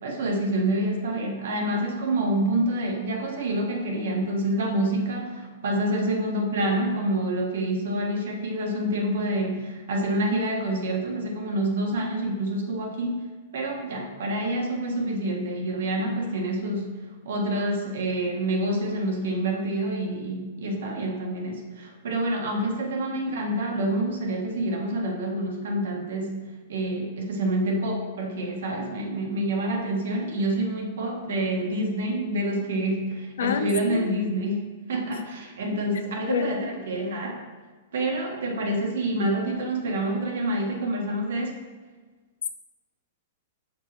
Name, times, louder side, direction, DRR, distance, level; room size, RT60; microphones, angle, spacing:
voice 1, 0.0-13.2 13.5-17.0 17.2-37.4 37.9-41.6, right 1 dB, 80° right, 0 dB, 1.5 m, -27 dB
voice 2, 33.4-34.1 36.3-36.7, left 6 dB, 85° left, 8 dB, 0.6 m, -27 dB
5.8 x 5.2 x 4.2 m, 1.3 s
hypercardioid pair, 155°, 0 cm